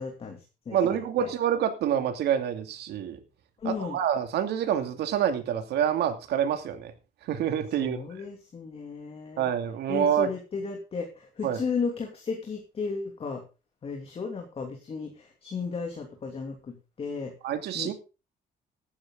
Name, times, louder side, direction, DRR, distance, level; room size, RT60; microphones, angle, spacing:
voice 1, 0.0-1.3 3.6-4.0 7.8-9.5 9.9-13.4 13.8-17.3 17.7-17.9, left 5 dB, 35° left, 2 dB, 2.8 m, -34 dB
voice 2, 0.7-3.2 3.6-6.9 7.3-8.0 9.4-10.3 11.4-11.6 17.4-17.9, right 9 dB, 85° right, 7 dB, 2.6 m, -27 dB
15.5 x 11.5 x 3.9 m, 0.31 s
cardioid pair, 150°, 17 cm